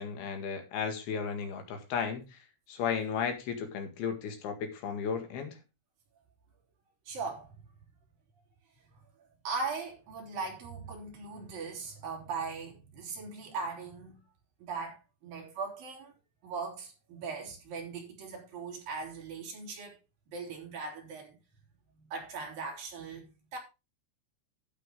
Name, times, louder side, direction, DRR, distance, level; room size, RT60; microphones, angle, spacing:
voice 1, 0.0-2.4 2.7-5.6, left 6 dB, 60° left, 3.3 m, -34 dB
voice 2, 7.1-7.6 9.4-14.2 14.6-16.1 16.4-20.0 20.3-21.4 21.9-23.6, right 4 dB, 45° right, 4.7 m, -39 dB
12.5 x 8.5 x 3.6 m
omnidirectional pair, 6.0 m